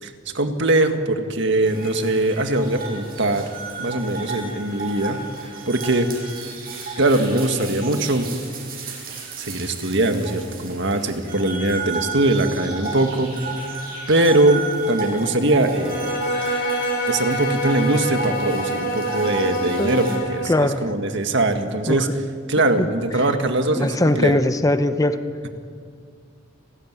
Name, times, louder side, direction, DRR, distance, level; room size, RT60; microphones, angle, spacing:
voice 1, 0.0-3.5 3.8-6.2 7.0-8.3 9.4-13.3 14.1-16.2 17.1-22.1 22.5-24.3, right 2 dB, 65° right, 6 dB, 1.9 m, -21 dB
sound 1, 1.6-20.2, right 4 dB, 50° right, 6.8 m, -33 dB
Bowed string instrument, 15.7-20.7, equal, 55° left, 3.8 m, -26 dB
voice 2, 19.8-20.2 20.5-20.9 21.9-22.1 22.8-22.9 23.8-25.2, left 1 dB, 15° left, 10 dB, 0.8 m, -21 dB
29.5 x 13.5 x 9.7 m, 2.2 s
head